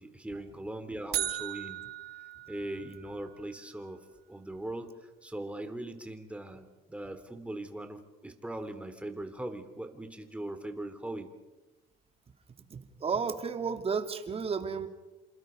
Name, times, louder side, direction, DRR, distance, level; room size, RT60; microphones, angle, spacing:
voice 1, 0.0-1.8 2.5-4.0 4.3-11.3, right 1 dB, 5° right, 7 dB, 3.4 m, -40 dB
sound 1, 1.1-3.3, right 12 dB, 75° right, 2.1 m, -37 dB
voice 2, 12.7-14.9, right 5 dB, 35° right, 7 dB, 2.6 m, -32 dB
28.5 x 27.5 x 5.3 m, 1.1 s
cardioid pair, 110°, 17 cm